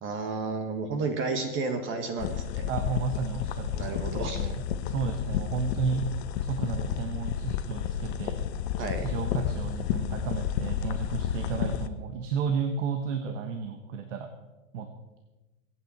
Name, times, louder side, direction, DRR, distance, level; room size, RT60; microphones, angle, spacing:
voice 1, 0.0-2.7 3.7-4.5 8.8-9.1, right 4 dB, 30° right, 6 dB, 1.6 m, -32 dB
sound 1, 2.2-11.9, left 9 dB, 50° left, 1.0 m, -31 dB
voice 2, 2.7-6.0 6.4-8.5 9.0-14.3 14.7-14.9, right 5 dB, 65° right, 7 dB, 1.4 m, -33 dB
22.5 x 9.1 x 4.4 m, 1.1 s
hypercardioid pair, 135°, 40 cm